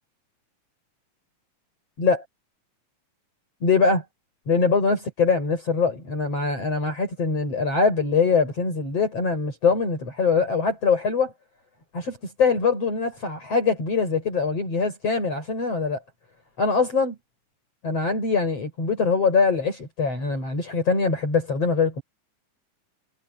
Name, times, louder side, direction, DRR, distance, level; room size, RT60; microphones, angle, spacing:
voice 1, 3.6-4.0 4.5-11.3 11.9-16.0 16.6-17.2 17.8-22.0, left 4 dB, 45° left, 7.7 m, -23 dB
omnidirectional pair, 3.8 m